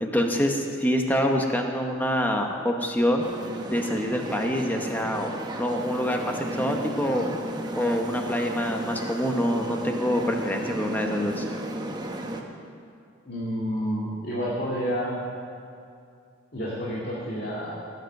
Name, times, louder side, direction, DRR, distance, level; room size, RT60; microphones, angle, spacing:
voice 1, 0.0-3.3 3.7-5.3 5.6-7.3 7.7-11.4, equal, 10° left, 2 dB, 1.0 m, -26 dB
sound 1, 3.2-12.4, right 1 dB, 20° right, 0.9 m, -34 dB
voice 2, 13.3-15.2 16.5-17.7, equal, 50° left, -6 dB, 2.0 m, -29 dB
16.5 x 8.1 x 6.5 m, 2.4 s
head